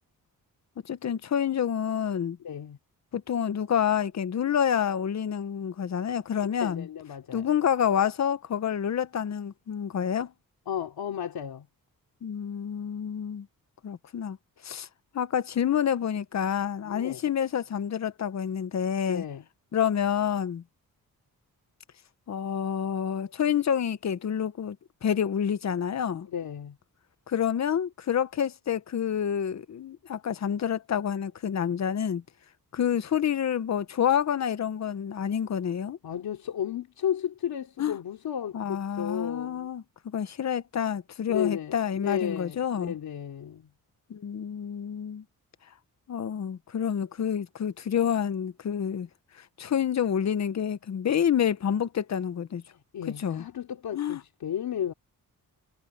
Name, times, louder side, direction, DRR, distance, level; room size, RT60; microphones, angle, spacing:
voice 1, 0.8-2.4 3.1-6.9 7.3-10.3 12.2-13.5 13.8-14.4 14.6-14.9 15.1-19.2 19.7-20.6 22.3-26.3 27.3-32.2 32.7-36.0 37.8-38.0 38.5-42.9 44.1-45.2 46.1-49.1 49.3-52.6 53.2-53.4 53.9-54.2, left 8 dB, 50° left, 0.9 m, -28 dB
voice 2, 2.4-2.8 6.4-7.5 10.7-11.7 16.8-17.2 19.1-19.4 26.3-26.8 36.0-39.7 41.3-43.7 52.9-54.9, left 9 dB, 80° left, 3.0 m, -33 dB
wide cardioid pair, 165°, 36 cm